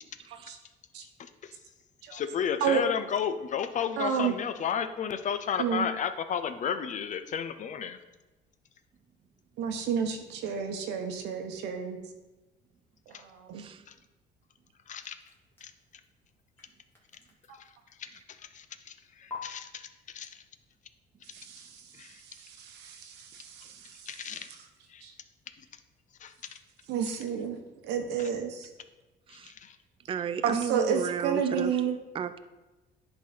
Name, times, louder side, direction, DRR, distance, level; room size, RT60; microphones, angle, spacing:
voice 1, 1.2-1.5 2.1-8.0 14.9-15.1 15.6-15.7 18.5-19.9 20.1-20.3 22.0-22.1 24.1-24.5 24.9-25.0 26.2-26.3 29.3-29.8, left 7 dB, 45° left, 10 dB, 0.6 m, -32 dB
voice 2, 4.0-4.3 5.6-5.9 9.6-12.0 13.1-13.6 17.5-17.6 21.3-22.1 22.4-24.5 25.0-25.1 26.9-28.7 30.4-31.9, right 7 dB, 85° right, 5 dB, 1.1 m, -31 dB
voice 3, 13.5-13.9 18.1-18.2 23.7-23.8 29.3-29.5 30.1-32.4, right 7 dB, 30° right, 11 dB, 0.4 m, -34 dB
sound 1, 14.9-18.6 19.3-19.4, left 5 dB, 15° left, 1.7 m, -50 dB
10.5 x 4.0 x 4.1 m, 1.1 s
cardioid pair, 110°, 17 cm